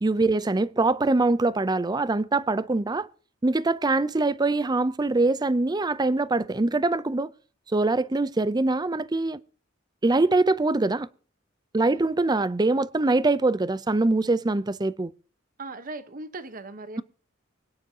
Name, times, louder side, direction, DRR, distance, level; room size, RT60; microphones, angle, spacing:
voice 1, 0.0-3.1 3.4-7.3 7.7-9.4 10.0-11.1 11.7-15.1, right 2 dB, 20° right, 0.5 m, -23 dB
voice 2, 15.6-17.0, right 2 dB, 45° right, 1.1 m, -38 dB
24.5 x 9.9 x 2.8 m
head